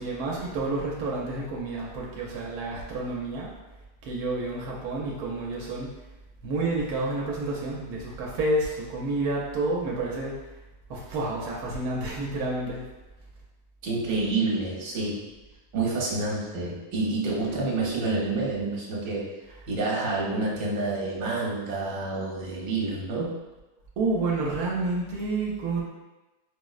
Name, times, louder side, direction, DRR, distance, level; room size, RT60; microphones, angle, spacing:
voice 1, 0.0-3.5 4.0-5.9 6.4-10.4 10.9-12.8 24.0-25.8, right 2 dB, 85° right, -3 dB, 1.1 m, -29 dB
voice 2, 13.8-15.2 15.7-19.3 19.7-23.4, right 3 dB, 65° right, -4 dB, 1.2 m, -28 dB
4.8 x 2.0 x 2.4 m, 1.1 s
omnidirectional pair, 1.6 m